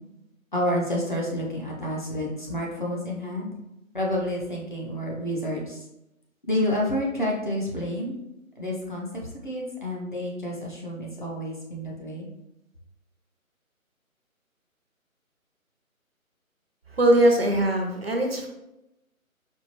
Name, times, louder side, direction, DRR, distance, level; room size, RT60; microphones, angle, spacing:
voice 1, 0.5-3.5 3.9-5.8 6.5-8.2 8.6-12.3, left 1 dB, 35° left, -3 dB, 0.6 m, -29 dB
voice 2, 16.9-18.5, right 1 dB, 45° right, 1 dB, 0.6 m, -21 dB
4.4 x 2.4 x 2.8 m, 0.90 s
figure-of-eight pair, 150°, 42 cm